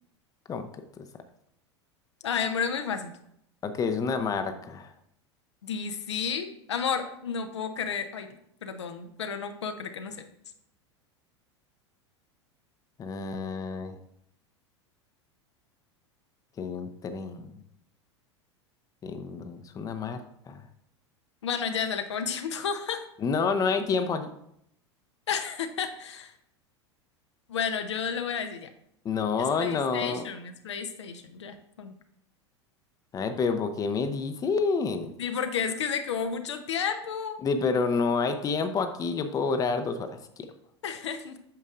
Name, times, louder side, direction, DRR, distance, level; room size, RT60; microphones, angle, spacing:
voice 1, 2.2-3.1 5.6-8.3 8.6-10.2 21.4-23.0 25.3-26.3 27.5-28.7 29.6-31.9 35.2-37.4 40.8-41.4, left 6 dB, 70° left, 7 dB, 0.8 m, -31 dB
voice 2, 3.6-4.9 13.0-14.0 16.6-17.6 19.0-20.2 20.5-20.7 23.2-24.3 29.0-30.3 33.1-35.1 37.4-40.5, left 5 dB, 25° left, 8 dB, 0.7 m, -28 dB
8.6 x 6.4 x 2.5 m, 0.74 s
figure-of-eight pair, 85°, 15 cm